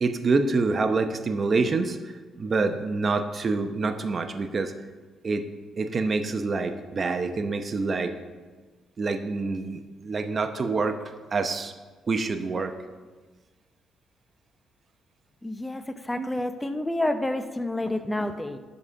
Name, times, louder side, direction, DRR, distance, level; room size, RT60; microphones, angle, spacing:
voice 1, 0.0-2.0 2.4-4.7 5.2-5.4 5.8-8.1 9.0-11.0 11.3-11.7 12.1-12.8 16.2-16.3, right 3 dB, 40° right, 8 dB, 0.8 m, -26 dB
voice 2, 15.4-18.6, left 1 dB, 10° left, 9 dB, 0.7 m, -29 dB
11.0 x 4.2 x 6.2 m, 1.3 s
cardioid pair, 90°, 0 cm